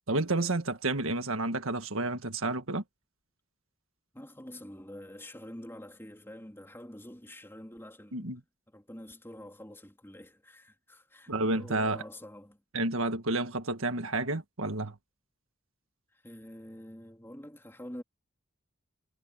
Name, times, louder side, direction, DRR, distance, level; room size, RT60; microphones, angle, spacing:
voice 1, 0.1-2.8 8.1-8.4 11.3-12.0 12.7-14.9, right 2 dB, 75° right, 1.7 m, -30 dB
voice 2, 4.1-12.6 16.1-18.0, left 1 dB, 10° left, 3.4 m, -47 dB
head